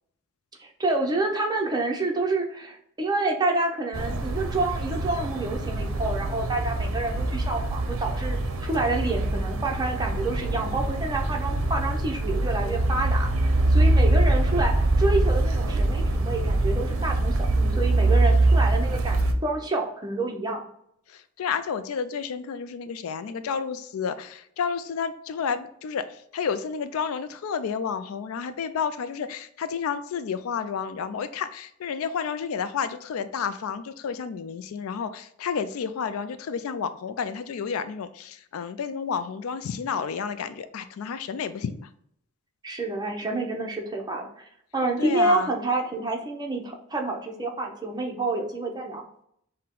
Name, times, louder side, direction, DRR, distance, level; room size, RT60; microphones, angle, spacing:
voice 1, 0.6-8.4 8.6-20.6 42.6-44.4 44.7-49.0, right 2 dB, 20° right, 1 dB, 0.7 m, -28 dB
sound 1, 3.9-19.3, right 2 dB, 70° right, 0.6 m, -24 dB
voice 2, 21.4-26.1 26.3-41.9 45.0-45.5, left 6 dB, 80° left, 12 dB, 0.4 m, -31 dB
5.7 x 2.2 x 3.7 m, 0.71 s
head